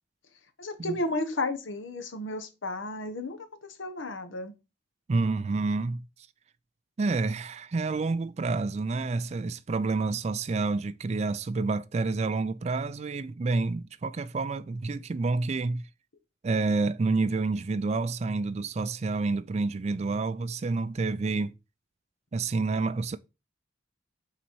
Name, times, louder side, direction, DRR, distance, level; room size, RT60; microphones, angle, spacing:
voice 1, 0.6-4.5, left 2 dB, 85° left, 1.1 m, -33 dB
voice 2, 5.1-6.1 7.0-15.8 16.4-21.5 22.3-23.2, right 3 dB, 35° right, 0.3 m, -29 dB
6.0 x 4.1 x 4.6 m
head